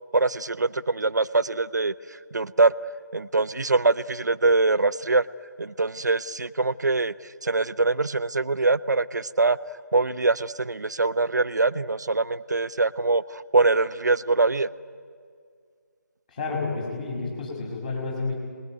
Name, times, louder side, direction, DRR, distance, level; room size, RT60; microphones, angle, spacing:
voice 1, 0.1-1.9 2.3-2.7 3.1-5.2 5.6-7.1 7.4-9.6 9.9-14.7, right 3 dB, 70° right, 14 dB, 0.8 m, -23 dB
voice 2, 16.3-18.3, left 3 dB, 25° left, -1 dB, 6.8 m, -30 dB
29.0 x 21.0 x 9.4 m, 2.1 s
figure-of-eight pair, 155°, 10 cm